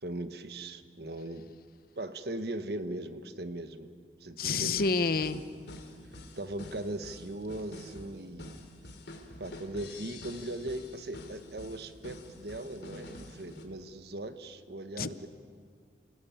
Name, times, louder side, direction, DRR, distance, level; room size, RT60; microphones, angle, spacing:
voice 1, 0.0-1.5 2.0-3.9 4.2-4.9 5.3-5.4 6.3-8.6 9.4-15.3, right 1 dB, 55° right, 10 dB, 1.3 m, -39 dB
voice 2, 4.4-5.4 15.0-15.3, left 4 dB, 50° left, 14 dB, 0.8 m, -29 dB
sound 1, 4.7-13.6, left 1 dB, 65° left, 3.0 m, -48 dB
28.5 x 19.5 x 8.7 m, 2.2 s
head